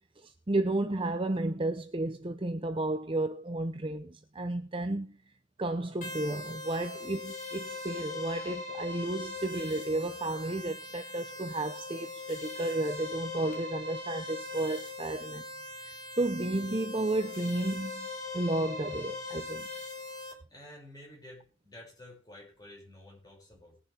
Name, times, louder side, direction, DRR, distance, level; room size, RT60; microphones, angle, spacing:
voice 1, 0.2-5.2 5.6-15.4 15.9-18.1 18.3-19.7, right 2 dB, 25° right, 0.7 m, -32 dB
sound 1, 6.0-20.3, left 3 dB, 40° left, 3.2 m, -40 dB
voice 2, 20.5-23.8, left 1 dB, 20° left, 6.2 m, -51 dB
21.0 x 7.1 x 3.5 m
head